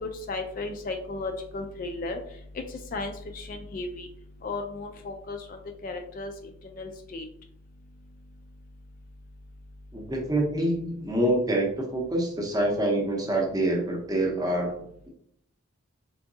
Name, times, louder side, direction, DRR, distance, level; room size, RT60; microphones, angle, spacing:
voice 1, 0.0-2.2 2.7-4.1 4.4-6.3 6.8-7.2, left 3 dB, 40° left, 5 dB, 0.3 m, -35 dB
voice 2, 9.9-15.1, right 1 dB, 15° right, 0 dB, 0.6 m, -26 dB
3.7 x 3.4 x 2.6 m, 0.71 s
head